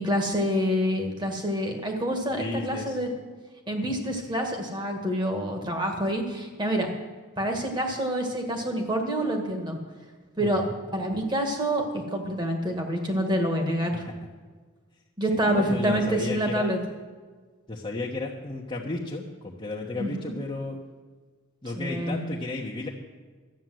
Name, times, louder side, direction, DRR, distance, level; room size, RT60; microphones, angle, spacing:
voice 1, 0.0-3.1 3.7-6.9 7.4-9.8 10.4-10.6 10.9-14.0 15.2-16.8 20.0-20.4 21.8-22.2, equal, 20° right, 3 dB, 1.8 m, -27 dB
voice 2, 2.3-3.0 10.4-10.7 15.3-16.7 17.7-20.8 21.6-22.9, left 2 dB, 25° left, -4 dB, 1.1 m, -33 dB
13.0 x 8.8 x 7.7 m, 1.5 s
head